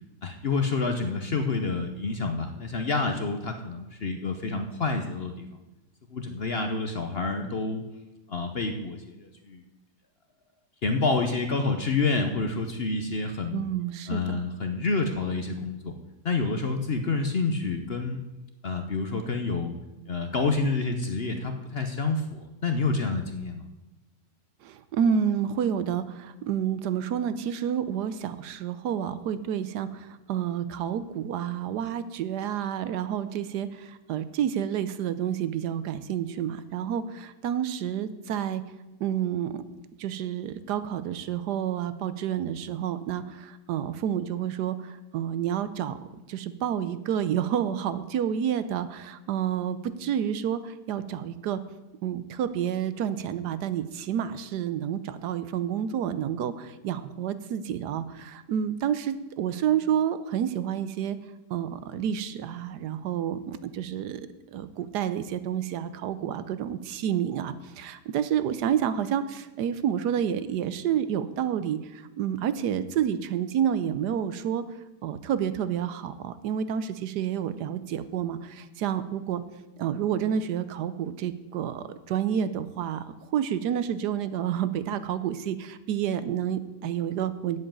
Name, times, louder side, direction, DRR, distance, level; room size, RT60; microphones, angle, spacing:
voice 1, 0.2-5.5 6.1-7.8 8.3-9.6 10.8-13.6 14.1-15.9 16.2-18.2 18.6-19.7 20.1-23.6, left 3 dB, 50° left, 6 dB, 0.8 m, -28 dB
voice 2, 13.5-14.4 24.6-38.6 39.0-39.6 40.0-46.0 46.3-51.6 52.0-61.2 61.5-64.2 64.5-74.6 75.0-79.4 79.8-83.0 83.3-87.6, right 9 dB, 75° right, 13 dB, 1.2 m, -29 dB
8.0 x 7.7 x 8.8 m, 1.0 s
omnidirectional pair, 1.8 m